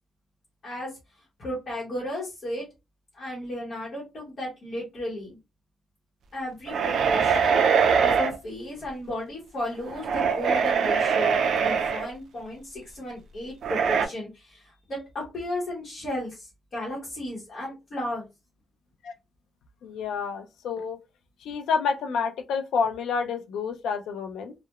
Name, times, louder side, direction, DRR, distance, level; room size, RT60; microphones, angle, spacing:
voice 1, 0.6-1.0 1.4-2.7 3.1-5.4 6.3-18.2, left 1 dB, 40° left, 0.8 m, -34 dB
sound 1, 6.7-8.4 9.9-12.1 13.6-14.1, right 6 dB, 60° right, 0.3 m, -23 dB
voice 2, 19.8-21.0 21.4-24.5, left 5 dB, 90° left, 0.4 m, -29 dB
2.8 x 2.0 x 2.2 m
cardioid pair, 160°, 0 cm